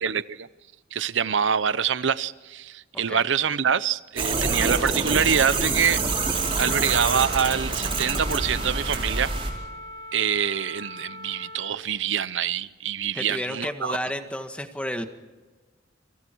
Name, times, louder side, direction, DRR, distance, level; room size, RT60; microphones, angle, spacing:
voice 1, 0.0-0.5 0.9-6.2 6.6-9.3 10.1-14.0, right 7 dB, 75° right, 0.7 m, -25 dB
sound 1, 4.2-9.5, right 3 dB, 30° right, 4.9 m, -26 dB
Wind instrument woodwind instrument, 5.5-11.8, right 1 dB, 25° left, 4.6 m, -39 dB
voice 2, 13.1-15.1, left 1 dB, 5° left, 1.7 m, -31 dB
29.0 x 25.0 x 4.6 m
head